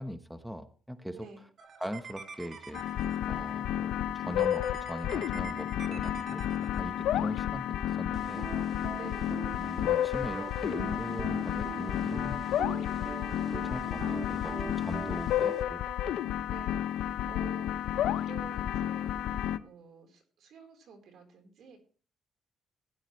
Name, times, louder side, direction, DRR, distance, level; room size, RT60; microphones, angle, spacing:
voice 1, 0.0-1.3 1.8-2.8 3.3-8.5 9.6-12.8 13.5-15.8, equal, ahead, 9 dB, 1.0 m, -41 dB
voice 2, 1.1-1.4 9.0-9.4 16.5-21.8, right 6 dB, 70° right, 4 dB, 4.0 m, -51 dB
sound 1, 1.6-3.5 4.4-7.2 8.1-15.6, right 5 dB, 50° right, 1.9 m, -44 dB
sound 2, 2.7-19.6, left 11 dB, 85° left, 0.6 m, -31 dB
15.5 x 11.0 x 3.2 m, 0.39 s
cardioid pair, 90°, 0 cm